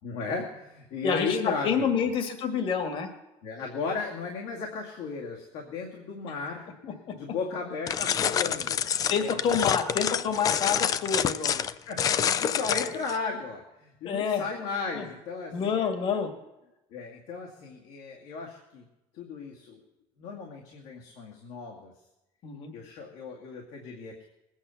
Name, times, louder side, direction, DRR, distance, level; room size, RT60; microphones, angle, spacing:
voice 1, 0.0-2.1 3.4-6.7 7.1-8.9 9.2-9.3 11.2-16.2 16.9-18.8 19.1-19.8 20.2-21.9 22.7-24.2, left 4 dB, 75° left, -1 dB, 2.2 m, -35 dB
voice 2, 1.0-3.1 6.8-7.2 9.1-11.6 14.0-14.4 14.9-15.1 15.5-16.3 22.4-22.7, left 6 dB, 50° left, 7 dB, 1.9 m, -28 dB
sound 1, 7.9-13.2, left 8 dB, 30° left, 0.4 m, -27 dB
20.0 x 8.9 x 7.1 m, 0.94 s
cardioid pair, 160°, 12 cm